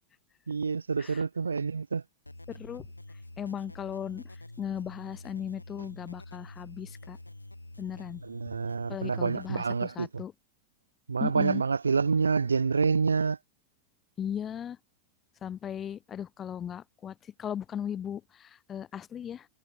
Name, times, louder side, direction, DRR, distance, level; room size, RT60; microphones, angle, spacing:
voice 1, 0.5-2.0 8.2-10.2 11.1-13.4, right 5 dB, 75° right, 0.4 m, -27 dB
sound 1, 2.2-9.8, left 2 dB, 85° left, 0.6 m, -47 dB
voice 2, 2.5-2.9 3.4-4.2 4.6-7.2 7.8-8.2 8.9-10.3 11.2-11.6 14.2-14.8 15.4-19.5, left 9 dB, 25° left, 1.1 m, -37 dB
figure-of-eight pair, 90°, 0 cm